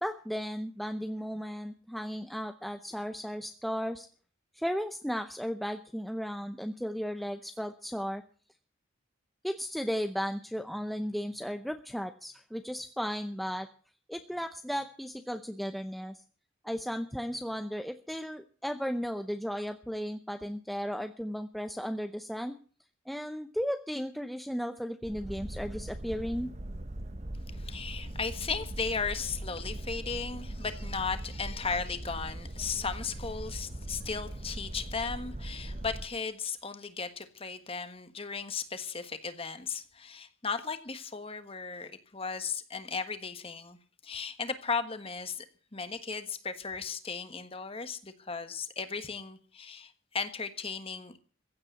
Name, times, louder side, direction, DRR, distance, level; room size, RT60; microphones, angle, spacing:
voice 1, 0.0-4.1 4.5-8.2 9.4-13.7 14.1-16.2 16.6-22.6 23.1-26.5, equal, ahead, 0.6 m, -35 dB
Boat Water vehicle, 25.0-36.1, right 1 dB, 35° right, 0.9 m, -40 dB
voice 2, 27.5-43.8 44.0-45.5 45.7-51.2, left 5 dB, 30° left, 1.4 m, -36 dB
15.5 x 8.8 x 8.1 m
head